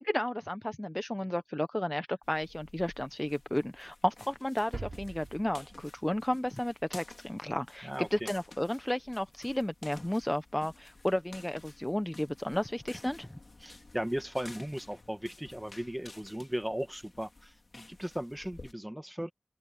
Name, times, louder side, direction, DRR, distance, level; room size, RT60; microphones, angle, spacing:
voice 1, 0.0-13.4, left 1 dB, 15° left, 1.0 m, -33 dB
sound 1, 2.2-18.7, left 2 dB, 60° left, 3.7 m, -53 dB
sound 2, 4.7-6.6 6.9-7.0, right 3 dB, 80° right, 4.5 m, -44 dB
voice 2, 7.8-8.3 13.6-19.3, equal, 10° right, 2.0 m, -37 dB
open air
wide cardioid pair, 50°, 0 cm